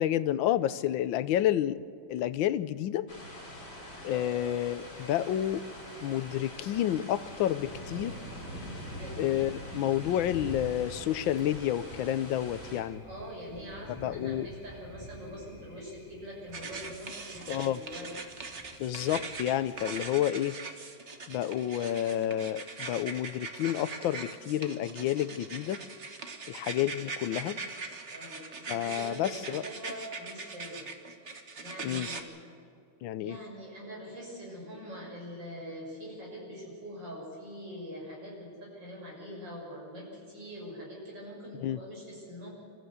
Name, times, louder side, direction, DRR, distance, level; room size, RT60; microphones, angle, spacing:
voice 1, 0.0-1.8 2.1-3.1 4.0-5.6 6.0-8.2 9.2-13.0 14.0-14.5 17.5-17.8 18.8-20.6 21.3-25.8 26.5-27.6 28.7-29.6 31.8-32.1 33.0-33.4 41.5-41.8, left 12 dB, 85° left, 15 dB, 1.4 m, -30 dB
sound 1, 3.1-12.8, equal, 30° left, 4.2 m, -44 dB
voice 2, 4.0-4.4 8.1-9.3 13.0-18.1 28.1-30.9 31.6-32.2 33.2-42.5, equal, 65° right, -3 dB, 7.0 m, -44 dB
Thunder, 4.4-20.1, left 1 dB, 10° left, 3.0 m, -50 dB
sound 2, 16.5-32.2, right 4 dB, 40° right, 1.5 m, -41 dB
27.0 x 14.5 x 8.1 m, 2.6 s
omnidirectional pair, 2.1 m